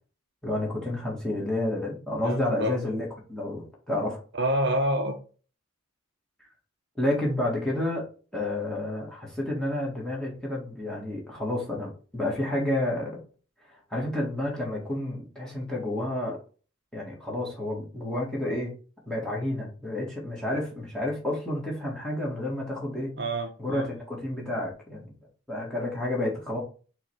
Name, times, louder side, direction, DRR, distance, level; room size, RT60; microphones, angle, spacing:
voice 1, 0.4-4.2 7.0-8.1 8.3-13.2 13.9-16.4 16.9-18.7 19.1-23.1 23.6-25.1 25.5-26.6, left 1 dB, 5° left, 1.8 m, -30 dB
voice 2, 2.2-2.8 4.3-5.2 23.2-23.9, right 1 dB, 50° right, 0.8 m, -27 dB
5.5 x 3.3 x 5.5 m
head